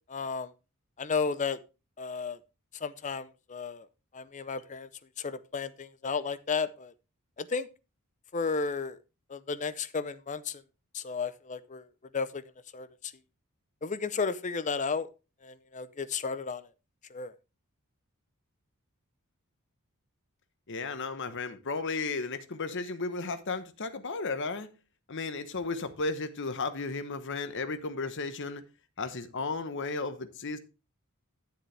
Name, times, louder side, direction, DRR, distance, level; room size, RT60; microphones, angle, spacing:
voice 1, 0.1-0.5 1.0-1.6 2.0-2.4 2.7-3.9 4.1-4.9 5.2-6.9 7.4-7.7 8.3-9.0 9.3-10.6 10.9-11.9 12.1-12.4 12.7-13.1 13.8-15.1 15.4-16.7 17.1-17.3, left 5 dB, 35° left, 0.6 m, -33 dB
voice 2, 20.7-24.7 25.1-28.6 29.0-30.6, left 3 dB, 55° left, 1.0 m, -34 dB
11.5 x 7.3 x 3.3 m
head